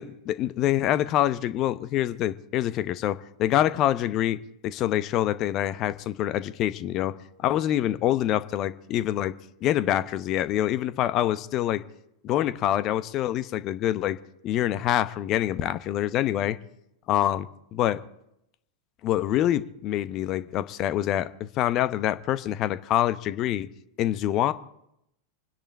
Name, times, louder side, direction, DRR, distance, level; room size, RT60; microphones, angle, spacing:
voice 1, 0.0-4.4 4.6-7.1 7.4-9.3 9.6-11.8 12.2-14.2 14.4-16.6 17.1-18.0 19.0-23.7 24.0-24.5, left 12 dB, 35° left, 14 dB, 0.8 m, -25 dB
26.5 x 10.5 x 4.2 m, 0.80 s
figure-of-eight pair, 90°, 0 cm